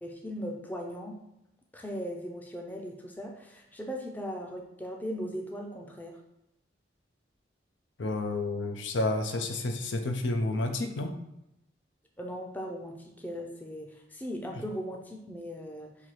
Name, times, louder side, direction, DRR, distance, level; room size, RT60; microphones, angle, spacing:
voice 1, 0.0-1.1 1.7-6.2 12.2-15.9, equal, 10° left, 1 dB, 0.5 m, -38 dB
voice 2, 8.0-11.1, left 2 dB, 90° left, 5 dB, 0.6 m, -30 dB
5.5 x 2.7 x 3.1 m, 0.85 s
head